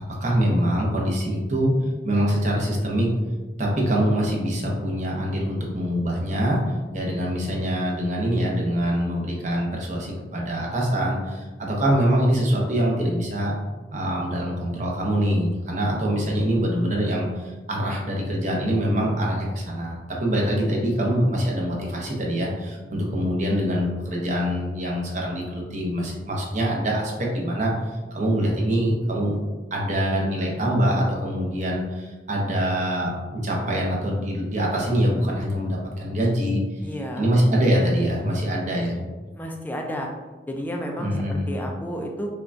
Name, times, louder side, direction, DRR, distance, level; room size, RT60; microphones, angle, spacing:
voice 1, 0.2-1.7 2.0-3.1 3.6-13.5 13.9-27.7 28.1-29.3 29.7-36.6 37.2-39.0 41.0-41.5, equal, 45° right, -2 dB, 0.8 m, -24 dB
voice 2, 36.8-37.3 39.3-40.1 40.5-42.3, equal, 10° left, 1 dB, 0.4 m, -31 dB
5.4 x 2.3 x 2.7 m, 1.2 s
head